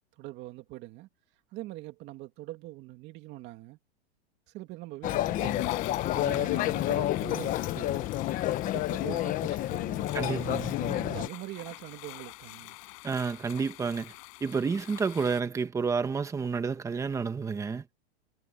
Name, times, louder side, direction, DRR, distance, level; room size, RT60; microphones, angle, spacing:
voice 1, 0.2-1.1 1.5-3.8 4.5-5.7 6.1-8.1 8.6-10.1 10.8-12.8, right 18 dB, 35° right, 2.6 m, -43 dB
sound 1, 5.0-11.3, left 14 dB, 25° left, 1.1 m, -29 dB
sound 2, 5.4-15.4, left 40 dB or more, 45° left, 5.9 m, -47 dB
voice 2, 10.1-10.7 13.0-14.1 14.4-17.8, right 5 dB, 10° right, 1.3 m, -30 dB
supercardioid pair, 160°, 32 cm